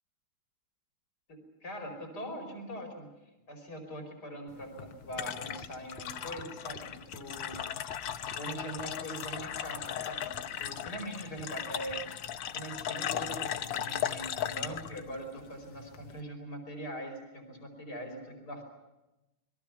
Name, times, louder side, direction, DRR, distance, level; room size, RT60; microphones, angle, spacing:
voice 1, 1.3-3.1 3.5-8.0 8.3-10.3 10.6-12.1 12.5-18.6, right 1 dB, 50° left, 4 dB, 5.5 m, -42 dB
sound 1, 4.5-16.2, left 10 dB, 70° left, 1.6 m, -37 dB
sound 2, 5.6-6.1 6.4-6.9 7.1-7.3 7.5-8.0 8.3-8.5 8.8-8.9 9.3-9.4 9.8-9.9 10.3-10.4 10.9-11.0 11.4-11.5 11.9-12.0, left 1 dB, 30° left, 1.8 m, -52 dB
28.5 x 22.0 x 6.0 m, 1.0 s
omnidirectional pair, 2.2 m